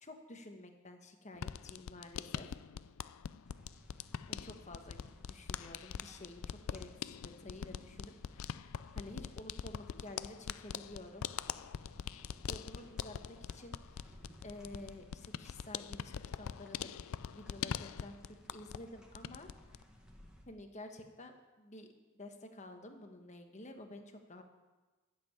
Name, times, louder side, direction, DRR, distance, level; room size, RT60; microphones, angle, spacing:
voice 1, 0.0-2.6 4.3-5.0 5.3-11.3 12.5-17.0 17.3-19.5 20.5-24.4, left 1 dB, 35° left, 5 dB, 1.3 m, -51 dB
sound 1, 1.4-18.9 19.1-19.8, left 8 dB, 75° left, 0.4 m, -43 dB
sound 2, 3.4-20.4, equal, 5° right, 1.6 m, -60 dB
12.0 x 7.8 x 8.6 m, 1.2 s
head